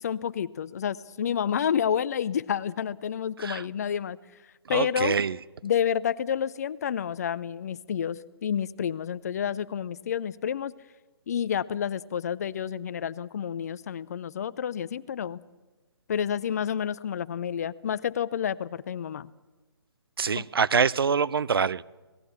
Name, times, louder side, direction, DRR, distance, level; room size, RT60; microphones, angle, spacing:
voice 1, 0.0-4.2 4.7-5.1 5.6-10.7 11.3-15.4 16.1-19.3 20.4-20.5, left 8 dB, 40° left, 0.6 m, -29 dB
voice 2, 4.6-5.4 20.2-21.8, right 6 dB, 60° right, 0.6 m, -25 dB
26.0 x 18.5 x 7.2 m
figure-of-eight pair, 140°, 14 cm